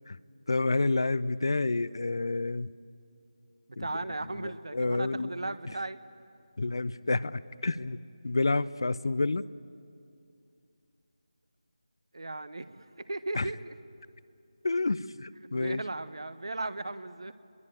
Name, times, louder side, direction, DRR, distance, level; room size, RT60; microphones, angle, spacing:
voice 1, 0.5-2.7 3.8-3.9 4.4-5.5 6.6-8.0 8.2-9.4 13.4-13.5 14.6-15.8, left 3 dB, 45° left, 18 dB, 0.5 m, -29 dB
voice 2, 3.8-6.0 12.1-13.7 15.5-17.3, right 2 dB, 55° right, 14 dB, 1.1 m, -36 dB
27.0 x 22.0 x 9.0 m, 2.5 s
figure-of-eight pair, 160°, 3 cm